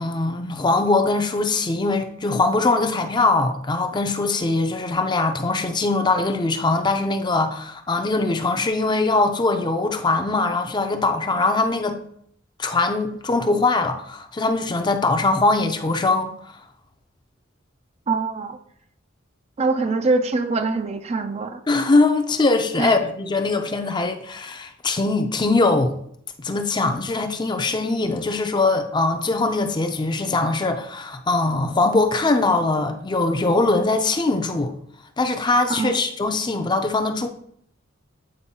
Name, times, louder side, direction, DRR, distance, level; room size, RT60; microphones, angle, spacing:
voice 1, 0.0-12.0 12.6-16.5 21.7-25.9 26.4-34.7 35.2-37.3, left 3 dB, 20° left, 0.5 m, -21 dB
voice 2, 18.1-18.6 19.6-21.6 22.8-23.0 35.7-36.0, right 3 dB, 35° right, 0.4 m, -23 dB
8.7 x 4.4 x 2.8 m
head